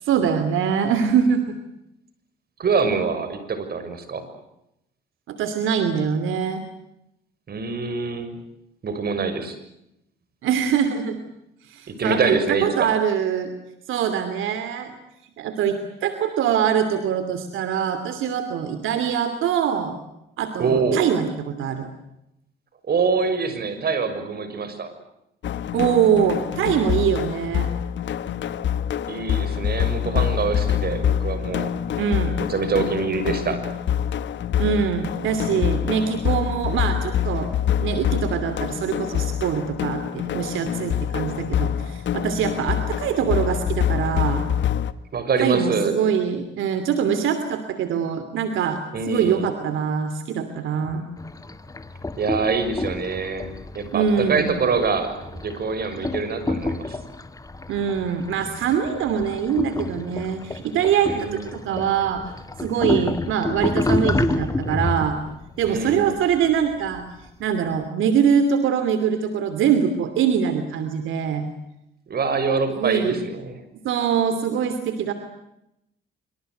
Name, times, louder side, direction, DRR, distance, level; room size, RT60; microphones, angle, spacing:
voice 1, 0.0-1.6 5.3-6.6 10.4-11.2 11.6-13.5 13.9-14.9 15.4-20.0 20.4-21.9 25.7-27.7 32.0-32.4 34.6-37.5 37.8-44.4 45.4-48.8 49.1-51.1 53.9-54.5 57.7-62.2 62.6-65.2 65.6-67.0 67.4-71.5 72.7-73.2 73.8-75.1, right 7 dB, 80° right, 9 dB, 2.8 m, -23 dB
voice 2, 2.6-4.2 7.5-8.4 8.8-9.6 11.9-12.9 20.6-21.0 22.8-24.9 29.1-31.7 32.5-33.6 45.1-46.0 48.9-49.5 52.2-57.0 61.1-61.5 65.6-66.1 72.1-73.6, right 4 dB, 50° right, 10 dB, 6.6 m, -25 dB
sound 1, 25.4-44.9, left 9 dB, 65° left, 1.6 m, -25 dB
sound 2, 51.2-67.3, left 2 dB, 15° left, 2.2 m, -30 dB
26.5 x 25.5 x 8.0 m, 0.84 s
cardioid pair, 90°, 20 cm